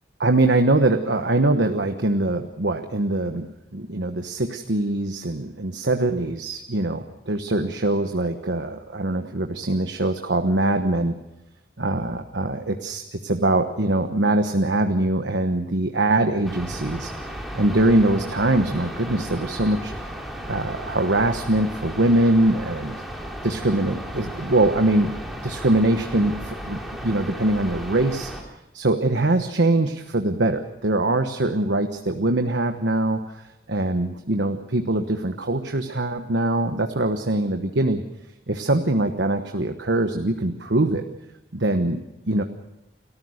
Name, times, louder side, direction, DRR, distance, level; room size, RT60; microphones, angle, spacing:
voice 1, 0.2-11.2 11.8-17.1 17.5-19.9 20.5-23.0 23.4-25.1 25.4-28.3 28.7-38.0 38.5-41.0 41.5-42.4, right 2 dB, 85° right, 6 dB, 1.2 m, -23 dB
sound 1, 16.4-28.4, equal, ahead, 2.9 m, -35 dB
29.5 x 14.0 x 6.5 m, 0.93 s
head